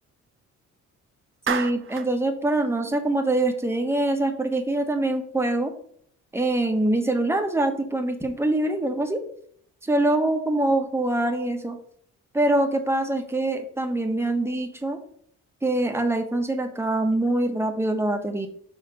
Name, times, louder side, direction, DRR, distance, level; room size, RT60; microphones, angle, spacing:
voice 1, 1.5-5.7 6.3-9.2 9.8-11.8 12.3-15.0 15.6-18.5, right 2 dB, 10° right, 5 dB, 1.2 m, -24 dB
Clapping, 1.5-2.1, right 7 dB, 45° right, 0.8 m, -29 dB
5.8 x 4.4 x 5.4 m, 0.62 s
cardioid pair, 90°, 30 cm